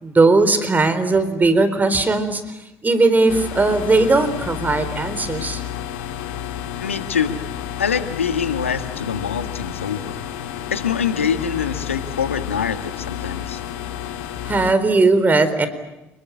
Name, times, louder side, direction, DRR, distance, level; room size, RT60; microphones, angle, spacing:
voice 1, 0.0-2.4 2.8-5.6 14.5-15.7, right 3 dB, 25° right, 12 dB, 4.1 m, -18 dB
sound 1, 3.3-14.7, left 10 dB, 70° left, 2.7 m, -31 dB
voice 2, 6.8-7.4 7.8-10.2 10.7-13.6, left 7 dB, 85° left, 10 dB, 1.7 m, -24 dB
29.0 x 22.0 x 8.7 m, 0.94 s
figure-of-eight pair, 50°, 7 cm